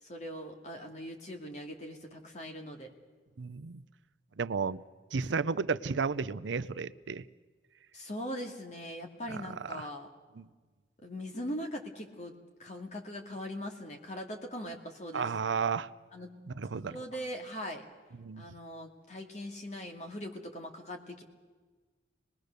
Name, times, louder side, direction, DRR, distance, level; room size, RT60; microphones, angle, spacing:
voice 1, 0.0-2.9 7.9-10.1 11.0-15.3 16.1-16.3 16.7-17.8 18.4-21.2, equal, 40° left, 3 dB, 2.3 m, -41 dB
voice 2, 3.4-3.8 4.4-4.8 5.1-7.2 10.4-10.5 15.1-15.9 16.5-17.0 18.2-18.4, right 5 dB, 90° right, 15 dB, 0.6 m, -32 dB
26.0 x 20.5 x 6.7 m, 1.4 s
head